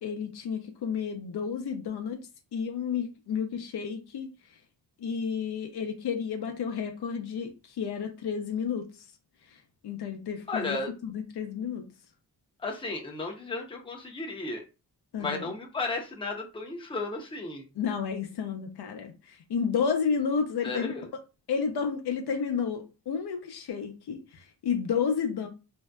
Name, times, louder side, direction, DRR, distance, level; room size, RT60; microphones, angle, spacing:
voice 1, 0.0-2.2 2.5-4.3 5.0-8.9 9.8-11.9 15.1-15.5 17.8-20.9 21.5-25.5, left 6 dB, 65° left, 0.5 m, -31 dB
voice 2, 10.5-10.9 12.6-14.6 15.2-17.6 20.6-21.1, left 3 dB, 15° left, 0.5 m, -34 dB
2.6 x 2.1 x 2.2 m
cardioid pair, 90°, 42 cm